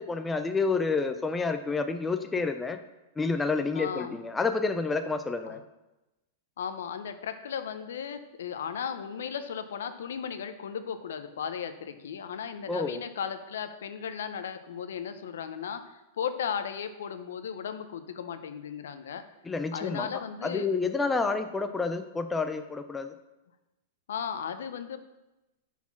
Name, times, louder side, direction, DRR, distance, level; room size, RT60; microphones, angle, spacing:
voice 1, 0.0-2.8 3.2-5.6 12.7-13.0 19.4-20.1 20.4-23.1, left 4 dB, 10° left, 8 dB, 0.3 m, -29 dB
voice 2, 3.7-4.2 5.5-5.6 6.6-19.2 19.7-20.7 24.1-25.0, left 7 dB, 90° left, 9 dB, 0.6 m, -36 dB
5.8 x 4.2 x 5.9 m, 0.99 s
supercardioid pair, 165°, 0 cm